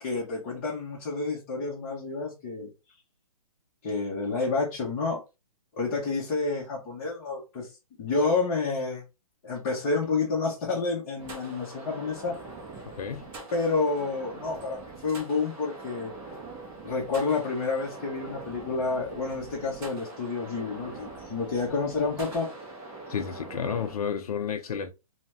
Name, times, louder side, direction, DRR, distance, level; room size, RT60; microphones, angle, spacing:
voice 1, 0.0-2.7 3.8-5.2 5.8-7.7 8.0-9.0 9.4-12.3 13.5-16.1 16.8-22.5, left 4 dB, 25° left, 0.8 m, -29 dB
sound 1, 11.2-23.9, right 2 dB, 10° right, 0.4 m, -43 dB
voice 2, 23.1-24.9, left 7 dB, 80° left, 0.5 m, -31 dB
2.7 x 2.1 x 3.3 m
hypercardioid pair, 160°, 19 cm